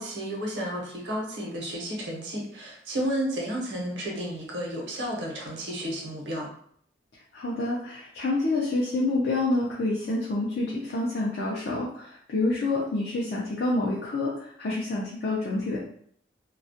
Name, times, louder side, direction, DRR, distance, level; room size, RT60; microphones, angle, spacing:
voice 1, 0.0-6.5, equal, 80° right, -1 dB, 0.8 m, -32 dB
voice 2, 7.3-15.8, left 2 dB, 65° left, -5 dB, 0.4 m, -28 dB
2.3 x 2.1 x 2.6 m, 0.64 s
head